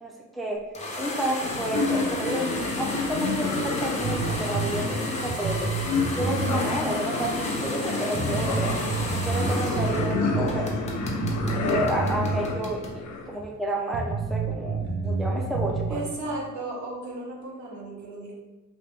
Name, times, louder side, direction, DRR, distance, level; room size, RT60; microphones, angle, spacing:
voice 1, 0.0-0.7 1.0-2.5 2.8-5.7 6.1-8.7 9.1-10.7 11.7-16.0, right 1 dB, ahead, -1 dB, 0.5 m, -30 dB
sound 1, 0.7-10.1 10.5-13.0, left 1 dB, 20° left, 0.9 m, -34 dB
sound 2, 1.4-13.3, left 3 dB, 70° left, 0.6 m, -30 dB
sound 3, 4.0-6.6 6.9-7.0 7.6-7.7 8.1-12.4 12.7-12.8 13.4-13.5 13.9-16.0, right 4 dB, 40° right, 0.7 m, -29 dB
voice 2, 15.9-18.3, right 2 dB, 70° right, -3 dB, 1.1 m, -35 dB
3.4 x 2.9 x 3.2 m, 1.1 s
cardioid pair, 90°, 30 cm